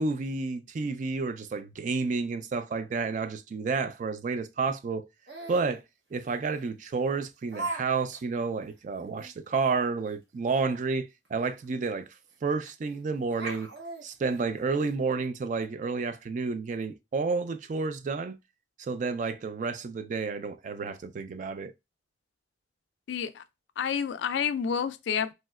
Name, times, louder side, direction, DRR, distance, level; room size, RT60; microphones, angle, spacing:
voice 1, 0.0-5.1 5.5-5.8 6.1-12.1 12.4-13.7 14.0-18.4 18.8-21.7, right 4 dB, 45° right, 0.3 m, -30 dB
Laughter, 5.3-5.7 6.5-6.6 7.5-7.8 8.1-8.2 8.7-8.8 9.2-9.3 11.2-11.3 11.6-11.7 12.7-12.9 13.3-14.9, right 2 dB, 65° right, 0.8 m, -37 dB
voice 2, 23.1-23.4 23.8-25.3, left 7 dB, 75° left, 0.3 m, -29 dB
3.1 x 2.8 x 2.2 m
head